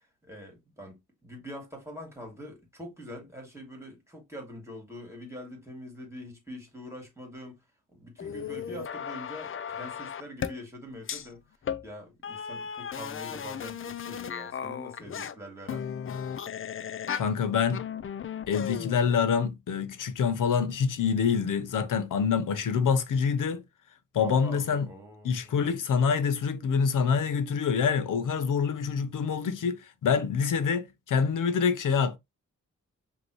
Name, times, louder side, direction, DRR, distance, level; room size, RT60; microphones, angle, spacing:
voice 1, 0.0-7.6 7.9-11.4 11.8-15.9 24.2-25.7, equal, 10° right, 2.3 m, -44 dB
sound 1, 8.2-10.6 11.1-11.3 11.6-11.9 12.2-15.4 15.7-17.4 17.7-19.1, left 8 dB, 40° left, 0.5 m, -36 dB
voice 2, 17.1-17.8 18.5-23.6 24.1-24.9 25.2-32.2, left 6 dB, 80° left, 0.8 m, -26 dB
5.3 x 2.9 x 3.0 m
cardioid pair, 80°, 31 cm